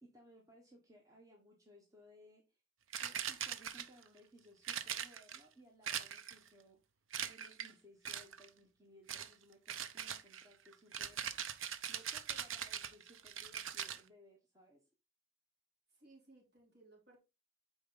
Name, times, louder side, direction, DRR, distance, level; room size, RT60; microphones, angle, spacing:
voice 1, 0.0-2.6 3.0-6.8 7.2-11.2 11.9-14.8, equal, 15° right, 1.2 m, -62 dB
sound 1, 2.9-4.1 4.6-5.4 5.9-6.5 7.1-7.7 8.0-8.5 9.1-9.3 9.7-14.0, right 9 dB, 85° right, 0.7 m, -41 dB
voice 2, 15.9-17.2, right 2 dB, 55° right, 3.3 m, -62 dB
8.4 x 4.6 x 3.9 m
head